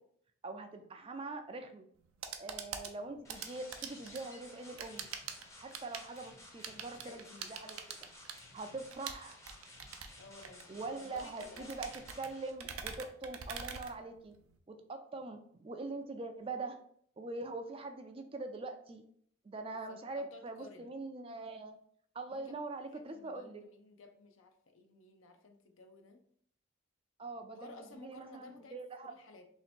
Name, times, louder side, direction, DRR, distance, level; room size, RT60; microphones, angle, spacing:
voice 1, 0.4-1.9 2.4-5.1 5.6-7.2 7.5-7.8 8.5-9.4 10.7-11.9 12.2-14.3 14.7-16.8 17.2-19.0 19.4-21.8 22.1-23.6 27.2-29.1, right 3 dB, 25° right, 7 dB, 0.3 m, -43 dB
sound 1, 1.9-14.6, right 7 dB, 80° right, 0.5 m, -46 dB
sound 2, 3.2-12.5, left 1 dB, 15° left, 0.6 m, -55 dB
voice 2, 6.8-7.5 10.2-11.9 19.7-21.0 22.3-22.5 22.9-26.2 27.5-29.5, left 3 dB, 70° left, 6 dB, 0.6 m, -55 dB
3.2 x 2.9 x 4.2 m, 0.63 s
head